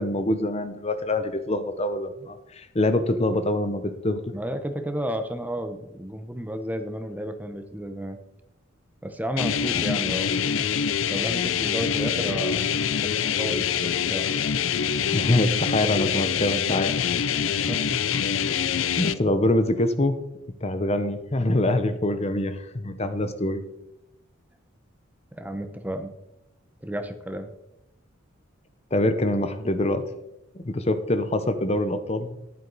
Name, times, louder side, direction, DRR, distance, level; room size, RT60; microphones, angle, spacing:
voice 1, 0.0-4.2 15.1-17.0 19.0-20.2 20.6-23.6 28.9-30.0 30.5-32.4, left 1 dB, 30° left, 10 dB, 0.8 m, -25 dB
voice 2, 4.3-8.2 9.0-10.4 11.1-12.7 13.0-14.3 17.7-18.0 25.3-26.1 26.8-27.5, equal, 10° right, 8 dB, 0.9 m, -32 dB
sound 1, 9.4-19.1, left 8 dB, 75° left, 0.6 m, -25 dB
14.0 x 11.0 x 4.0 m, 0.87 s
head